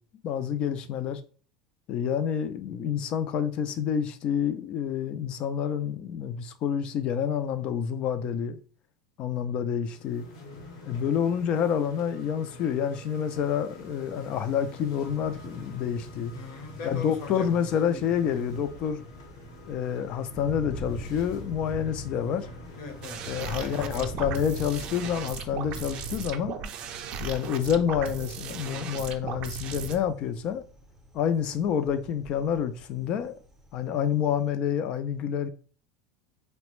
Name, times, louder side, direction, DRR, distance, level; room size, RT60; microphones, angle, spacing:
voice 1, 0.2-1.2 1.9-8.6 9.2-10.3 10.9-16.3 16.8-19.0 19.7-22.5 23.3-26.6 27.2-30.6 31.1-33.3 33.7-35.5, left 8 dB, 45° left, 0.3 m, -28 dB
sound 1, 9.8-26.4, left 1 dB, 90° left, 0.9 m, -46 dB
voice 2, 16.3-18.5 22.7-24.1, left 4 dB, 65° left, 0.9 m, -41 dB
Thunder, 17.0-34.5, right 1 dB, 10° right, 0.6 m, -44 dB
sound 2, 23.0-30.0, right 6 dB, 50° right, 0.4 m, -37 dB
3.2 x 2.1 x 3.0 m
supercardioid pair, 125°, 2 cm